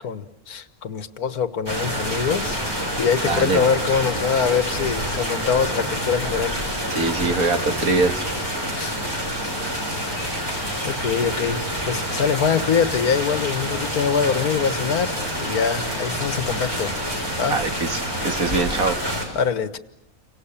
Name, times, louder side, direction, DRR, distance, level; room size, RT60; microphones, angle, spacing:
voice 1, 0.0-2.6 3.0-6.6 8.8-9.0 10.0-10.1 10.8-11.6 11.9-15.1 15.4-16.9 17.4-17.6 19.3-19.8, left 6 dB, 85° left, 12 dB, 1.8 m, -23 dB
sound 1, 1.7-19.3, equal, 15° right, 6.4 m, -27 dB
voice 2, 3.2-3.7 6.9-8.3 17.5-19.0, right 3 dB, 70° right, 6 dB, 2.4 m, -23 dB
29.5 x 25.5 x 7.2 m, 0.79 s
omnidirectional pair, 1.5 m